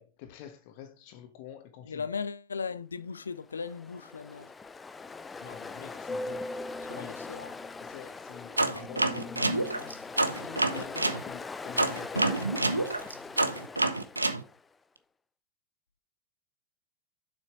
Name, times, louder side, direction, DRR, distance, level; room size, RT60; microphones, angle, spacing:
voice 1, 0.0-2.1 5.4-6.5 6.9-7.3 7.8-12.5, left 9 dB, 45° left, 1.4 m, -47 dB
voice 2, 1.9-4.5 6.9-7.5, left 5 dB, 75° left, 0.5 m, -37 dB
Ocean, 3.5-14.6, left 3 dB, 15° left, 0.6 m, -40 dB
sound 1, 8.6-11.2 11.8-14.4, right 2 dB, 85° right, 0.7 m, -27 dB
7.3 x 6.1 x 4.6 m
figure-of-eight pair, 90°, 0 cm